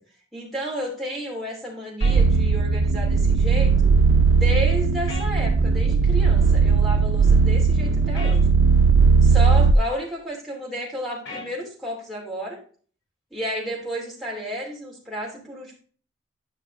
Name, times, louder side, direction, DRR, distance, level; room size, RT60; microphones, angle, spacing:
voice 1, 0.3-4.0 4.3-8.4 9.2-12.6 13.3-15.8, equal, ahead, -3 dB, 2.8 m, -32 dB
sound 1, 2.0-2.2 5.1-5.3 8.1-8.4 11.2-11.5, left 3 dB, 80° left, 3.0 m, -36 dB
sound 2, 2.0-9.7, right 5 dB, 75° right, 0.5 m, -18 dB
10.5 x 5.7 x 3.2 m, 0.42 s
head